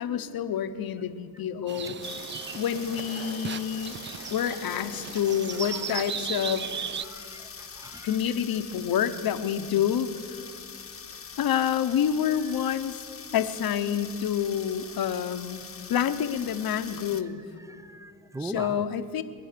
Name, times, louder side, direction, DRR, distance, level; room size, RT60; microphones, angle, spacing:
voice 1, 0.0-2.0 2.5-4.0 4.3-6.7 8.0-10.5 11.4-13.0 13.3-15.6 15.9-17.4 18.4-19.2, left 9 dB, 65° left, 9 dB, 1.1 m, -28 dB
sound 1, 1.7-7.0, right 7 dB, 30° right, 0.4 m, -36 dB
sound 2, 2.0-17.2, left 6 dB, 35° left, 1.1 m, -43 dB
voice 2, 7.0-7.5 7.8-8.1 17.7-18.9, right 1 dB, 10° right, 13 dB, 0.8 m, -40 dB
22.5 x 9.3 x 6.8 m, 2.6 s
supercardioid pair, 65°, 38 cm